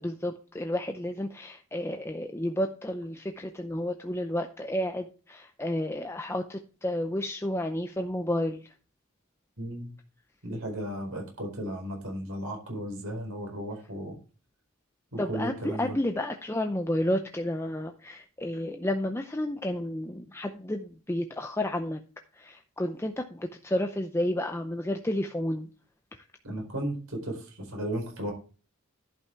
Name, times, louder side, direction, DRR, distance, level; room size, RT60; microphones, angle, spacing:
voice 1, 0.0-8.7 15.2-22.0 22.3-25.7, left 1 dB, 10° left, 5 dB, 0.5 m, -31 dB
voice 2, 9.6-9.9 10.4-14.2 15.1-15.9 26.4-28.3, right 1 dB, 80° right, 2 dB, 4.5 m, -35 dB
11.0 x 5.8 x 4.5 m, 0.36 s
head